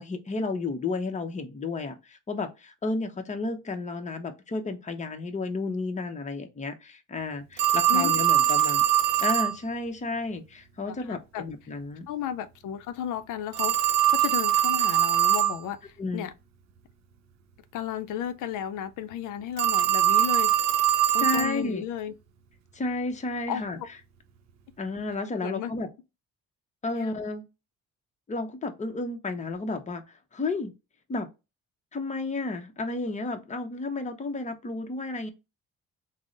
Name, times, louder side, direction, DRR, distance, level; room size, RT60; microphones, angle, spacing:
voice 1, 0.0-8.8 9.2-12.1 16.0-16.3 21.2-21.8 22.7-23.8 24.8-25.9 26.8-27.5 28.3-30.7 31.1-31.3 31.9-35.3, left 3 dB, 25° left, 0.7 m, -32 dB
Telephone, 7.6-9.6 13.5-15.6 19.6-21.6, right 11 dB, 60° right, 0.6 m, -22 dB
voice 2, 10.9-11.4 12.1-16.3 17.7-20.5 21.1-22.1 23.5-23.7 25.4-25.7 26.9-27.1, left 9 dB, 85° left, 0.5 m, -34 dB
3.5 x 2.0 x 3.8 m
cardioid pair, 90°, 30 cm